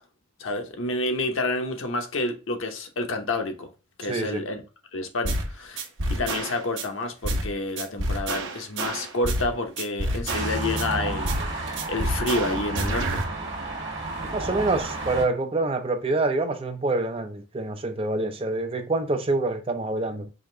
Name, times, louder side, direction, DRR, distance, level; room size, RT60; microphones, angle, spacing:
voice 1, 0.4-3.7 4.0-4.6 4.9-13.2, left 2 dB, 85° left, 0.8 m, -29 dB
voice 2, 4.1-4.4 14.3-20.3, right 2 dB, 30° right, 0.5 m, -26 dB
sound 1, 5.2-5.5 5.8-6.8 7.2-7.5 7.8-9.5 9.8-10.8 11.2-11.5 11.8-13.2, right 1 dB, 75° right, 0.9 m, -28 dB
sound 2, 10.3-15.3, right 2 dB, 60° right, 1.4 m, -31 dB
5.0 x 2.5 x 3.2 m
head